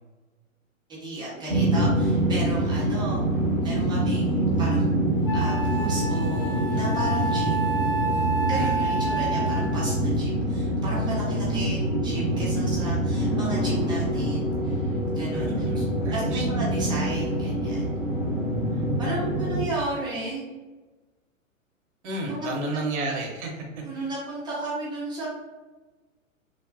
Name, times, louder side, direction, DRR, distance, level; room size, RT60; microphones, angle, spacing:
voice 1, 0.9-3.2 3.6-5.0 5.3-7.5 8.1-14.9 15.1-15.5 15.8-15.9 16.1-17.9 19.0-20.5 22.3-22.5 22.7-22.8 23.8-25.3, right 2 dB, 10° right, -7 dB, 0.6 m, -34 dB
sound 1, 1.5-19.6, right 1 dB, 30° left, 1.5 m, -25 dB
Wind instrument woodwind instrument, 5.2-9.9, right 3 dB, 45° left, 1.0 m, -29 dB
voice 2, 8.6-8.9 15.3-16.5 22.0-23.7 23.9-24.1, right 2 dB, 55° right, 0 dB, 0.9 m, -32 dB
3.3 x 2.1 x 2.5 m, 1.2 s
figure-of-eight pair, 110°, 41 cm